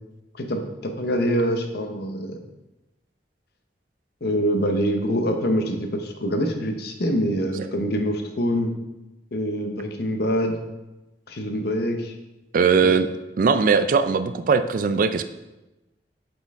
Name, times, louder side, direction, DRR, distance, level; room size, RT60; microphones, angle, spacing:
voice 1, 0.3-2.4 4.2-8.7 9.3-10.6 11.3-12.1 12.8-13.0, equal, 60° left, 5 dB, 0.8 m, -25 dB
voice 2, 12.5-13.1 13.4-15.2, right 5 dB, 50° right, 11 dB, 0.3 m, -19 dB
7.7 x 4.4 x 3.5 m, 1.0 s
head